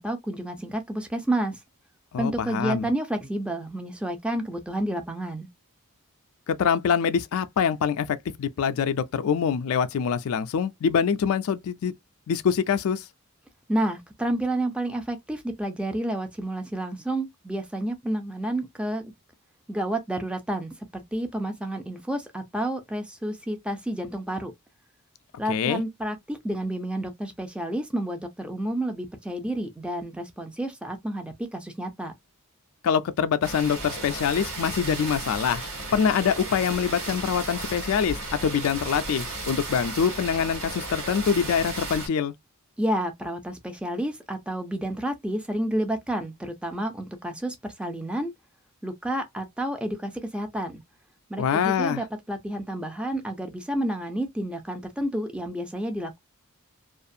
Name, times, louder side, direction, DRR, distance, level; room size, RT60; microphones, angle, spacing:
voice 1, 0.0-1.6 2.2-5.5 13.7-19.1 19.7-24.5 25.4-32.1 42.8-48.3 48.8-50.8 51.3-56.2, right 1 dB, 5° right, 0.5 m, -30 dB
voice 2, 2.1-2.9 6.5-11.9 12.3-13.1 25.5-25.8 32.8-35.6 35.9-38.2 38.4-42.3 51.4-52.0, left 7 dB, 70° left, 0.3 m, -25 dB
sound 1, 33.4-42.1, right 2 dB, 85° right, 1.6 m, -34 dB
2.5 x 2.4 x 2.6 m
head